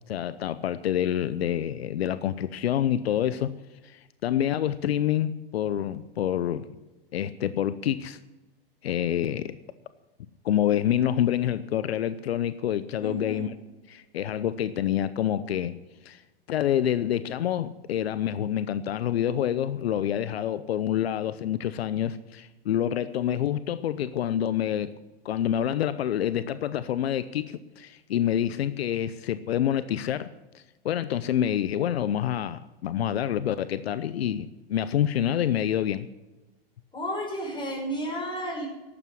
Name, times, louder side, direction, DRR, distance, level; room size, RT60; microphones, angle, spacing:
voice 1, 0.1-3.5 3.8-6.7 7.1-8.2 8.8-9.5 10.4-13.5 13.9-15.7 16.0-16.2 16.5-24.9 25.2-30.3 30.5-36.1, left 10 dB, 85° left, 14 dB, 0.8 m, -27 dB
voice 2, 13.0-13.5 36.9-38.7, equal, 15° left, 0 dB, 5.7 m, -32 dB
12.0 x 8.6 x 9.8 m, 1.1 s
hypercardioid pair, 120°, 30 cm